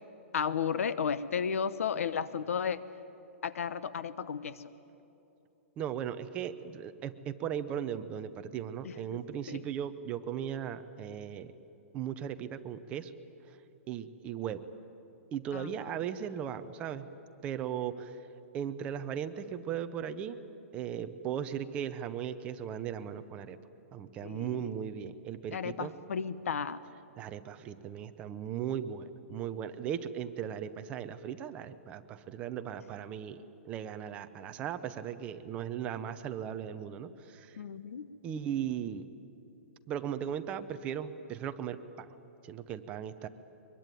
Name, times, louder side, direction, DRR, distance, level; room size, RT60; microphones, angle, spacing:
voice 1, 0.3-2.8 3.4-4.6 8.8-9.2 9.5-9.6 15.5-15.9 24.2-24.7 25.5-26.8 37.6-38.1, left 7 dB, 75° left, 14 dB, 1.0 m, -34 dB
voice 2, 5.8-11.5 11.9-13.1 13.9-14.6 15.3-17.1 17.4-18.2 18.5-20.4 20.7-23.6 23.9-25.9 27.2-33.4 33.6-37.6 38.2-39.1 39.9-42.2 42.4-43.3, right 9 dB, 15° right, 9 dB, 0.7 m, -37 dB
23.5 x 22.5 x 9.2 m, 2.9 s
hypercardioid pair, 175°, 8 cm